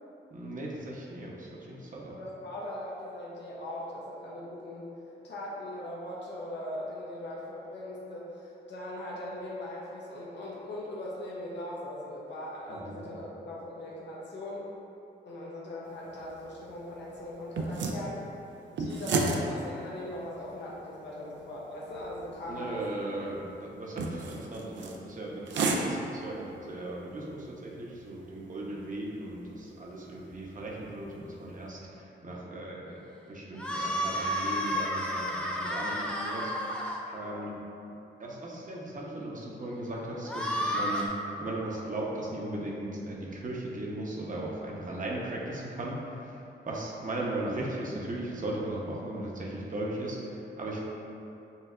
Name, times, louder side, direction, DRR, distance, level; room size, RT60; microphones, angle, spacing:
voice 1, 0.3-2.2 12.7-13.0 22.5-33.0 33.3-36.7 37.1-37.6 38.2-41.1 41.4-46.3 46.7-50.8, right 1 dB, 45° right, -3 dB, 0.8 m, -37 dB
voice 2, 2.1-4.9 5.2-14.7 15.2-18.3 18.7-22.8 37.2-37.4, left 1 dB, 70° left, -5 dB, 0.7 m, -40 dB
sound 1, 15.9-31.7, right 3 dB, 75° right, 0.4 m, -37 dB
sound 2, 33.6-37.0 40.3-41.1, equal, 5° left, 0.5 m, -31 dB
5.5 x 2.7 x 2.4 m, 2.8 s
cardioid pair, 70°, 19 cm